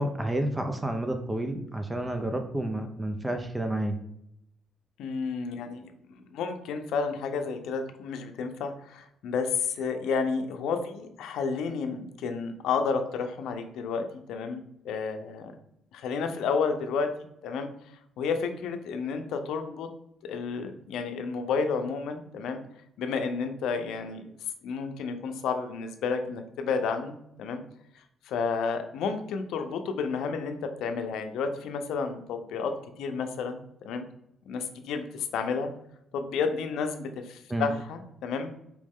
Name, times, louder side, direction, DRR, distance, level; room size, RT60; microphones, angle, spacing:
voice 1, 0.0-4.0 37.5-37.7, right 1 dB, 15° right, 6 dB, 0.6 m, -30 dB
voice 2, 5.0-15.5 15.9-17.1 17.4-17.7 18.2-19.9 20.2-22.6 23.0-24.2 24.6-27.6 28.2-34.1 34.5-35.7 36.1-38.5, left 5 dB, 85° left, 7 dB, 0.6 m, -31 dB
4.7 x 3.1 x 3.5 m, 0.78 s
cardioid pair, 90°, 0 cm